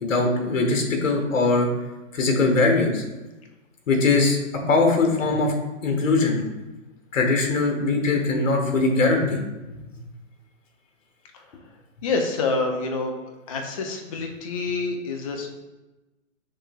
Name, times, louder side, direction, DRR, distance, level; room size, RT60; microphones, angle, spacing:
voice 1, 0.0-1.7 2.1-3.0 3.9-4.4 4.7-5.5 5.8-6.4 7.1-9.4, left 3 dB, 75° left, 3 dB, 1.2 m, -21 dB
voice 2, 12.0-13.1 13.5-15.5, left 3 dB, 30° left, 3 dB, 0.3 m, -27 dB
6.3 x 3.3 x 2.3 m, 1.1 s
hypercardioid pair, 135°, 39 cm